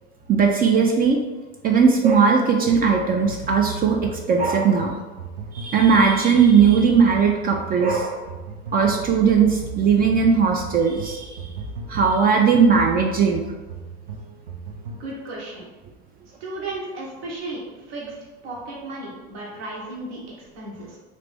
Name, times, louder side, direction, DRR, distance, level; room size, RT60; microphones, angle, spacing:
voice 1, 0.3-1.2 1.6-5.0 5.5-8.2 8.7-11.5 11.9-13.4, right 6 dB, 30° right, 2 dB, 0.4 m, -18 dB
sound 1, 2.7-15.1, right 3 dB, 85° right, 0.6 m, -36 dB
voice 2, 15.0-15.7 16.4-17.6 17.9-18.1 18.4-20.2 20.5-21.0, right 2 dB, 60° right, -4 dB, 1.1 m, -34 dB
2.9 x 2.6 x 3.4 m, 1.2 s
hypercardioid pair, 80°, 30 cm